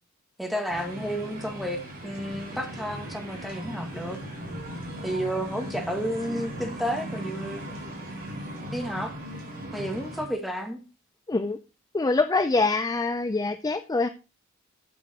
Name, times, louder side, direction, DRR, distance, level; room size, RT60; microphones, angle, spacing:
voice 1, 0.4-4.2 5.0-7.7 8.7-9.1 9.7-10.8, equal, ahead, 1.9 m, -31 dB
sound 1, 0.7-10.3, right 1 dB, 45° right, 4.3 m, -38 dB
voice 2, 11.3-11.6 11.9-14.1, left 3 dB, 20° left, 0.4 m, -24 dB
8.6 x 7.7 x 4.4 m
head